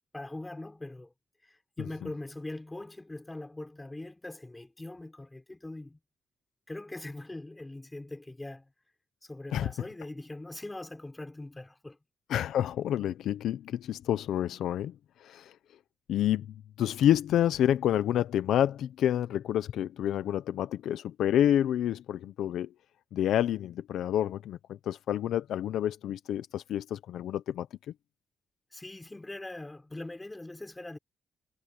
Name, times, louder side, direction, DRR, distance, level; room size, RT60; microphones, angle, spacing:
voice 1, 0.1-1.1 1.5-6.0 6.7-8.7 9.2-12.0 28.7-31.0, left 2 dB, 10° left, 4.9 m, -42 dB
voice 2, 9.5-9.9 12.3-14.9 15.2-15.5 16.1-22.7 23.1-27.7, left 11 dB, 85° left, 0.8 m, -28 dB
cardioid pair, 160°, 0 cm